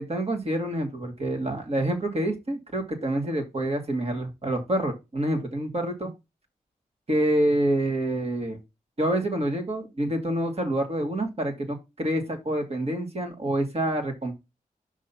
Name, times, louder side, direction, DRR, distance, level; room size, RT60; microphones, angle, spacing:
voice 1, 0.0-6.1 7.1-8.6 9.0-14.4, right 1 dB, 45° right, 3 dB, 2.3 m, -27 dB
5.4 x 3.6 x 5.7 m, 0.24 s
cardioid pair, 55°, 15 cm